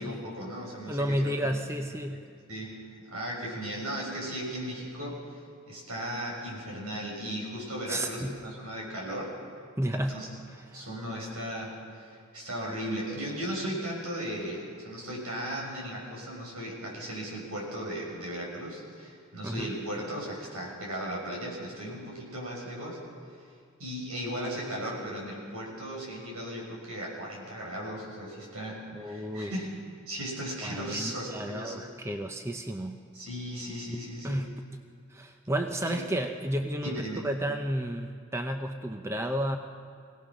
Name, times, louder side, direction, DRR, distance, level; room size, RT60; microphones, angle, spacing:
voice 1, 0.0-1.6 2.1-2.2 2.5-5.4 5.7-9.4 9.9-10.3 10.7-23.0 23.8-31.8 33.1-34.5 35.9-36.1 36.8-37.3, equal, 85° right, -2 dB, 6.3 m, -37 dB
voice 2, 0.9-2.2 7.9-8.5 9.8-10.2 19.4-19.7 28.9-29.5 30.6-33.0 34.2-34.6 35.1-39.6, right 1 dB, 10° right, 5 dB, 0.6 m, -32 dB
24.0 x 17.5 x 6.2 m, 2.2 s
head